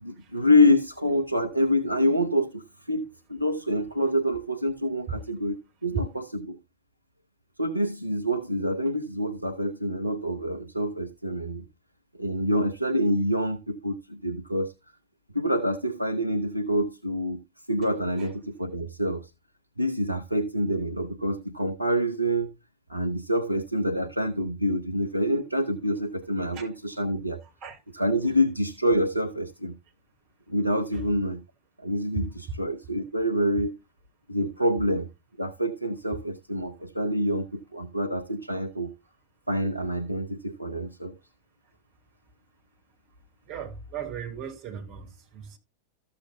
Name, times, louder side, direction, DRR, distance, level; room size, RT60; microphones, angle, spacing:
voice 1, 0.0-6.6 7.6-11.6 12.2-14.7 15.3-17.4 17.7-19.3 19.8-22.5 22.9-27.4 27.9-29.7 30.5-31.4 31.8-33.8 34.3-35.1 35.4-38.9 39.5-41.1, equal, 85° right, 0.7 m, -26 dB
voice 2, 43.5-45.1 45.3-45.6, right 8 dB, 40° right, 2.8 m, -37 dB
13.5 x 6.7 x 2.7 m
figure-of-eight pair, 90°, 0 cm